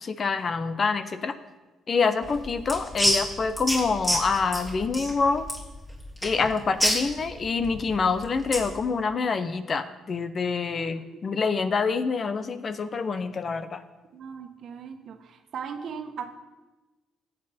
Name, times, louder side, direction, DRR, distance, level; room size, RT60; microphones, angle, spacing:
voice 1, 0.0-1.3 1.9-5.5 6.2-13.8, left 4 dB, 40° left, 11 dB, 0.8 m, -26 dB
sound 1, 2.2-8.7, equal, 15° left, 3.7 m, -29 dB
voice 2, 10.7-11.2 14.1-16.3, right 6 dB, 65° right, 6 dB, 1.3 m, -38 dB
17.0 x 7.8 x 4.4 m, 1.2 s
cardioid pair, 85°, 0 cm